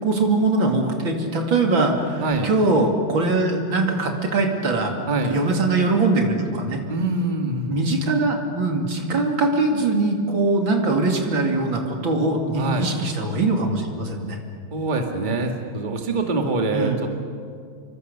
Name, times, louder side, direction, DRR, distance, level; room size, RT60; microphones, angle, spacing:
voice 1, 0.0-4.9 5.2-6.8 7.7-14.4 16.7-17.0, right 2 dB, 70° right, 2 dB, 3.3 m, -22 dB
voice 2, 2.2-2.5 5.1-5.4 6.9-7.8 12.6-12.9 14.7-17.1, right 2 dB, 25° right, 3 dB, 2.0 m, -24 dB
28.0 x 23.5 x 6.9 m, 2.2 s
omnidirectional pair, 2.3 m